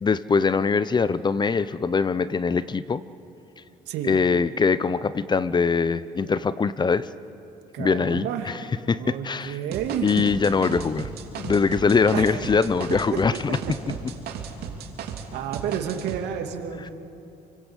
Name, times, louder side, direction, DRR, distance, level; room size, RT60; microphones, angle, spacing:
voice 1, 0.0-3.0 4.0-7.1 7.8-8.6 8.9-9.6 10.0-11.1 11.4-13.6, left 5 dB, 25° left, 16 dB, 0.7 m, -22 dB
voice 2, 3.9-4.2 7.7-8.5 9.0-10.2 12.1-12.4 12.9-13.4 15.3-16.9, right 9 dB, 85° right, 4 dB, 2.7 m, -30 dB
sound 1, 9.7-15.3 15.5-16.2, right 7 dB, 65° right, 3.3 m, -35 dB
29.5 x 24.0 x 8.3 m, 3.0 s
cardioid pair, 110°, 17 cm